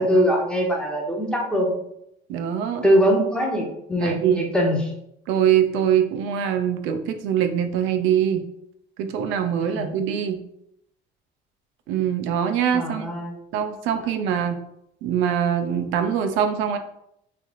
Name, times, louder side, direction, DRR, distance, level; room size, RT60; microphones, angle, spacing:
voice 1, 0.0-1.7 2.8-4.9 9.6-10.0 12.7-13.3, equal, 5° left, -1 dB, 0.6 m, -22 dB
voice 2, 2.3-2.8 4.0-4.5 5.3-8.4 9.0-10.4 11.9-13.1 13.5-14.6 15.0-16.8, right 9 dB, 90° right, 7 dB, 0.5 m, -23 dB
3.2 x 2.5 x 3.9 m, 0.76 s
cardioid pair, 155°, 19 cm